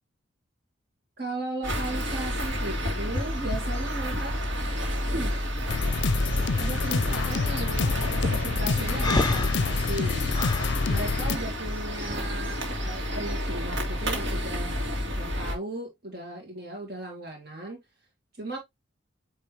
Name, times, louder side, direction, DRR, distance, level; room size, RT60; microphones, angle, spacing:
voice 1, 1.2-4.4 5.1-5.4 6.6-10.6 10.9-14.8 15.0-17.8 18.4-18.6, right 2 dB, 55° right, 2.0 m, -36 dB
sound 1, 1.6-15.5, equal, 70° right, 2.1 m, -30 dB
sound 2, 5.7-11.4, left 4 dB, 65° left, 0.5 m, -27 dB
Breathing, 9.0-10.7, left 2 dB, 20° left, 0.7 m, -28 dB
8.7 x 3.4 x 3.2 m
head